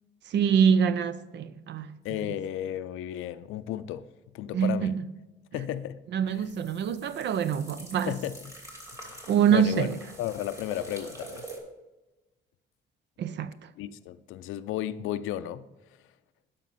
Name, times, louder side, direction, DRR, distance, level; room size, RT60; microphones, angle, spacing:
voice 1, 0.3-2.0 2.3-2.4 4.5-5.0 6.1-8.2 9.3-10.0 13.2-13.7, right 7 dB, 60° right, 0.5 m, -25 dB
voice 2, 2.0-5.0 5.5-6.0 6.3-6.4 8.1-8.5 9.0-9.9 10.2-11.5 13.8-15.7, left 12 dB, 90° left, 0.5 m, -34 dB
sound 1, 6.3-11.6, right 2 dB, 15° right, 2.7 m, -46 dB
12.0 x 5.2 x 4.1 m
cardioid pair, 90°, 20 cm